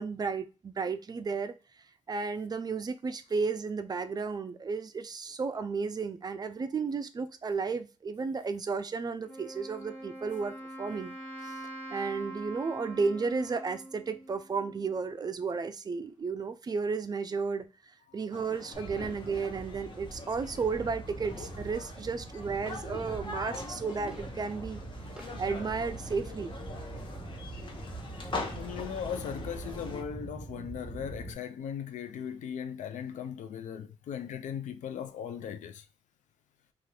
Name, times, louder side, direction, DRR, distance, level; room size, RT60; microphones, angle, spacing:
voice 1, 0.0-1.5 2.1-11.1 11.4-11.6 11.9-17.7 18.1-24.8 25.4-26.5, right 4 dB, 35° right, 0.3 m, -33 dB
Wind instrument woodwind instrument, 9.3-15.0, right 1 dB, 10° left, 1.1 m, -44 dB
sound 1, 18.3-30.0, left 3 dB, 40° left, 0.7 m, -43 dB
sound 2, 18.7-31.3, right 2 dB, 5° right, 0.7 m, -43 dB
voice 2, 28.5-35.8, left 8 dB, 80° left, 0.4 m, -38 dB
2.6 x 2.4 x 3.2 m
cardioid pair, 85°, 12 cm